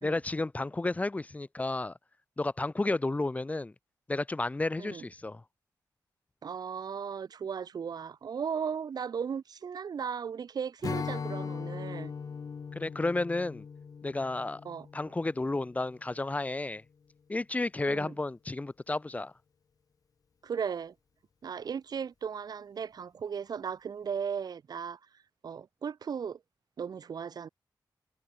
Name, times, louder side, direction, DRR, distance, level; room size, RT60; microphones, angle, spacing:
voice 1, 0.0-1.9 2.4-3.7 4.1-5.4 12.7-13.6 14.0-14.6 14.9-16.8 17.3-19.3, left 2 dB, 20° left, 0.7 m, -32 dB
voice 2, 6.4-12.1 14.6-14.9 17.9-18.1 20.4-20.9 21.4-25.0 25.4-26.4 26.8-27.5, right 7 dB, 65° right, 0.7 m, -36 dB
Strum, 10.8-16.2, left 6 dB, 55° left, 0.8 m, -40 dB
wide cardioid pair, 110°, 7 cm